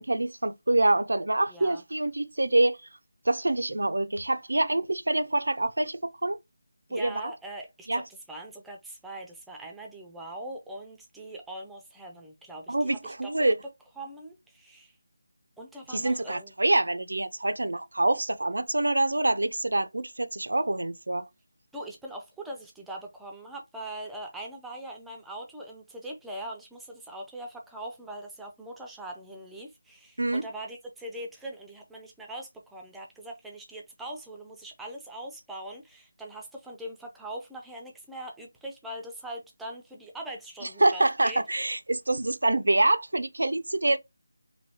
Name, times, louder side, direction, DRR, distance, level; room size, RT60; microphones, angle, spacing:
voice 1, 0.0-2.8 3.3-6.4 6.9-7.3 7.9-8.0 12.7-13.6 15.9-21.3 30.2-30.4 40.8-44.0, right 2 dB, 90° right, 0.4 m, -26 dB
voice 2, 1.5-1.8 6.9-8.0 8.3-13.5 14.0-14.9 15.6-16.5 21.7-41.4, right 1 dB, ahead, 0.3 m, -41 dB
3.0 x 2.6 x 2.8 m
figure-of-eight pair, 175°, 0 cm